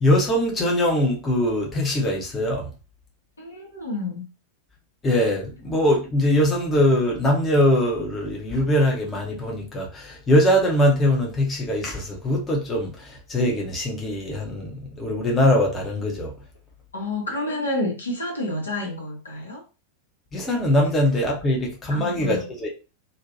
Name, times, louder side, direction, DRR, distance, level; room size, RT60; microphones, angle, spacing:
voice 1, 0.0-2.7 5.0-16.3 20.3-22.7, left 1 dB, 20° left, 0.8 m, -22 dB
voice 2, 3.4-4.2 16.9-19.6 21.9-22.5, left 2 dB, 75° left, 1.0 m, -29 dB
2.6 x 2.2 x 2.6 m
figure-of-eight pair, 90°, 0 cm